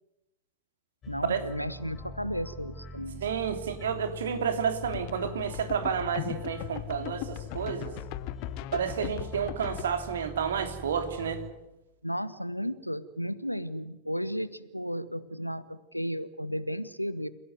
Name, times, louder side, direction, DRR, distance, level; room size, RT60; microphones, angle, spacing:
sound 1, 1.0-11.5, left 4 dB, 30° left, 4.0 m, -43 dB
voice 1, 1.1-3.2 12.0-17.3, equal, 90° left, 16 dB, 1.2 m, -34 dB
voice 2, 3.2-7.9 8.7-11.4, right 7 dB, 65° right, 7 dB, 3.2 m, -30 dB
sound 2, 4.8-9.8, left 16 dB, 45° left, 1.2 m, -38 dB
29.5 x 17.0 x 9.6 m, 0.95 s
figure-of-eight pair, 90°, 0 cm